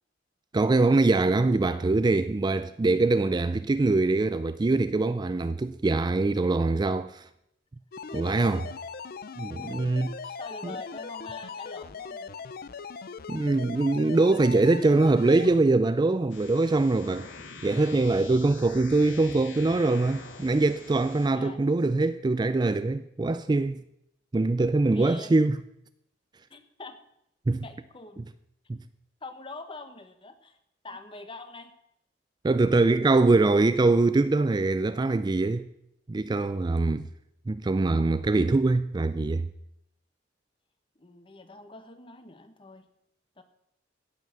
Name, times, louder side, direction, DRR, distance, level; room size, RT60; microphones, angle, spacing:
voice 1, 0.5-7.2 8.1-8.7 9.4-10.1 10.6-10.8 13.3-17.3 17.6-23.8 24.3-25.6 27.5-27.6 28.7-28.8 32.4-35.7 36.1-37.1 37.5-39.5, right 3 dB, 20° right, 0.3 m, -23 dB
sound 1, 7.9-15.6, left 5 dB, 50° left, 0.5 m, -40 dB
voice 2, 9.6-9.9 10.4-12.5 21.3-21.6 24.8-25.4 26.5-27.0 27.6-28.2 29.2-30.6 30.8-31.7 41.0-42.9 43.4-43.5, left 2 dB, 30° left, 1.2 m, -44 dB
sound 2, 16.3-21.3, left 4 dB, 80° left, 2.0 m, -44 dB
16.5 x 5.9 x 6.6 m
head